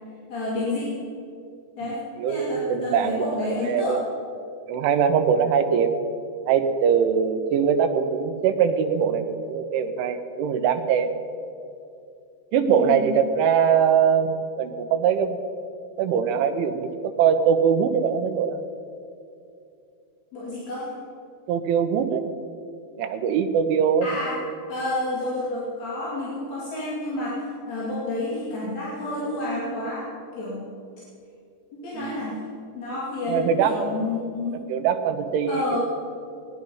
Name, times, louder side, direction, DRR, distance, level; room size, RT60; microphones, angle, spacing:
voice 1, 0.3-0.9 1.8-2.0 2.3-4.0 12.6-13.1 20.3-20.9 24.0-24.4 24.7-30.0 30.4-30.7 31.7-32.4 32.7-34.6 35.5-35.8, left 2 dB, 40° left, -7 dB, 3.4 m, -29 dB
voice 2, 1.8-4.0 4.7-5.9 6.5-11.1 12.5-15.4 16.0-18.6 21.5-22.2 23.0-24.1 31.9-32.2 33.3-33.8 34.7-35.8, right 7 dB, 85° right, 7 dB, 3.4 m, -22 dB
19.0 x 10.5 x 5.5 m, 2.5 s
omnidirectional pair, 5.4 m